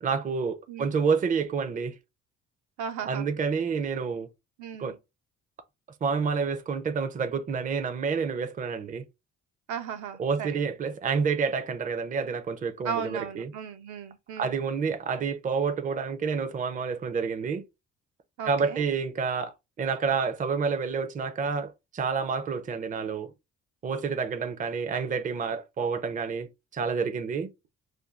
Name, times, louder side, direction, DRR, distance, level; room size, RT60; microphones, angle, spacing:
voice 1, 0.0-1.9 3.0-4.3 4.8-5.0 6.0-9.0 10.2-13.5 14.4-17.6 18.4-23.3 23.8-26.5 26.7-27.5, right 5 dB, 25° right, 0.5 m, -29 dB
voice 2, 2.8-3.3 4.6-5.0 9.7-10.7 12.8-14.6 18.4-18.8, right 7 dB, 75° right, 0.6 m, -36 dB
2.6 x 2.2 x 3.2 m
cardioid pair, 90°, 30 cm